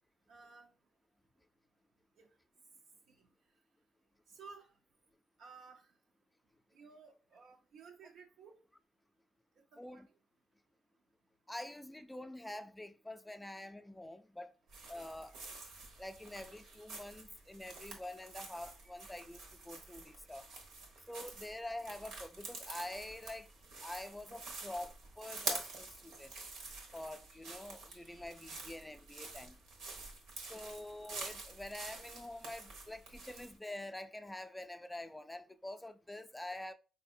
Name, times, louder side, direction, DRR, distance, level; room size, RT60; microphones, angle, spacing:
voice 1, 0.3-0.7 2.2-2.3 3.1-3.3 4.3-4.7 5.4-5.9 6.7-8.6 9.6-10.1, right 5 dB, 70° right, 0.5 m, -56 dB
voice 2, 11.5-14.5 14.9-15.4 16.0-20.5 21.1-23.5 23.8-26.3 26.9-29.6 30.5-36.7, left 1 dB, 10° left, 0.3 m, -46 dB
sound 1, 14.7-33.6, right 3 dB, 85° right, 1.1 m, -47 dB
4.1 x 2.7 x 2.6 m
cardioid pair, 90°, 0 cm